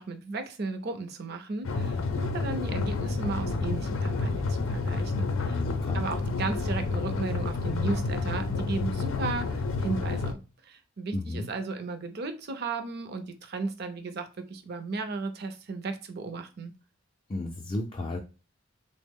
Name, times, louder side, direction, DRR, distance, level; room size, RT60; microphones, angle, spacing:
voice 1, 0.0-5.6 5.9-16.7, right 3 dB, 55° right, 8 dB, 0.5 m, -35 dB
sound 1, 1.6-10.3, left 3 dB, 85° left, 0.5 m, -29 dB
voice 2, 5.5-6.1 11.1-11.5 17.3-18.2, left 2 dB, 30° left, 1 dB, 0.4 m, -33 dB
3.4 x 2.0 x 3.5 m, 0.32 s
head